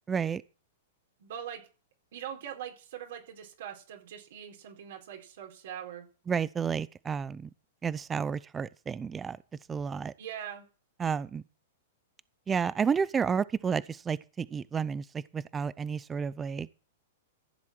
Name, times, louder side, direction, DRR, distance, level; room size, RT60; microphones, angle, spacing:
voice 1, 0.1-0.4 6.3-7.5 7.8-9.4 9.7-10.1 11.0-11.4 12.5-16.7, right 6 dB, 15° right, 0.6 m, -31 dB
voice 2, 1.2-1.6 2.1-6.1 10.2-10.6, right 9 dB, 70° right, 4.4 m, -42 dB
14.5 x 7.4 x 6.2 m
hypercardioid pair, 130°, 0 cm